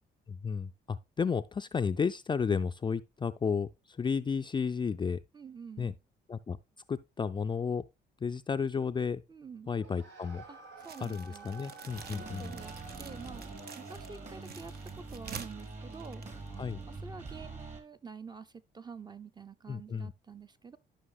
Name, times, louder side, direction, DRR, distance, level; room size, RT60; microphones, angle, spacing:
voice 1, 0.3-5.2 5.8-5.9 6.3-6.6 6.9-7.9 8.2-9.2 9.7-10.4 11.0-12.5 16.6-16.8 19.7-20.1, left 6 dB, 25° left, 0.4 m, -32 dB
voice 2, 5.3-6.0 9.3-9.7 10.5-11.5 12.4-13.5 13.8-16.2 16.9-20.8, right 5 dB, 20° right, 0.6 m, -48 dB
sound 1, 9.7-14.6, right 4 dB, 80° right, 2.3 m, -51 dB
sound 2, 10.8-16.9, right 6 dB, 60° right, 1.1 m, -49 dB
sound 3, 11.9-17.8, right 3 dB, 40° right, 2.4 m, -45 dB
13.0 x 5.7 x 2.3 m
cardioid pair, 100°, 19 cm